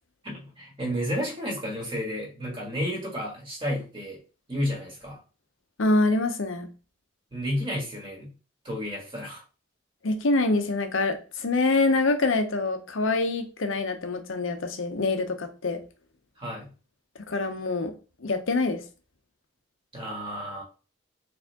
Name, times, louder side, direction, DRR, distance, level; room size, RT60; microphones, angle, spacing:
voice 1, 0.2-4.2 4.5-5.2 7.3-8.3 8.6-9.4 16.4-16.7 19.9-20.6, equal, 25° right, -2 dB, 1.6 m, -32 dB
voice 2, 5.8-6.7 10.0-15.8 17.3-17.9 18.2-18.8, left 2 dB, 80° left, 7 dB, 0.7 m, -25 dB
4.3 x 3.4 x 2.8 m, 0.34 s
head